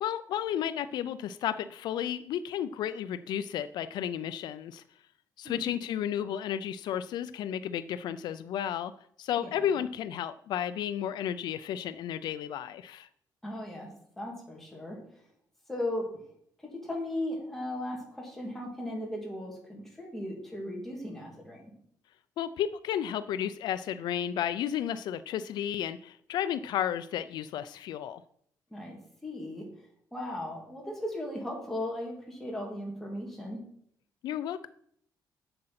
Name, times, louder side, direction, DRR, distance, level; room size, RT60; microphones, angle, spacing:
voice 1, 0.0-4.8 5.4-8.9 9.2-13.1 22.4-28.2 34.2-34.7, left 10 dB, 75° left, 13 dB, 0.4 m, -33 dB
voice 2, 13.4-15.0 15.7-16.2 16.6-21.7 28.7-29.7 30.1-33.6, left 1 dB, 5° left, -2 dB, 2.8 m, -37 dB
7.8 x 7.7 x 5.8 m, 0.66 s
cardioid pair, 165°, 7 cm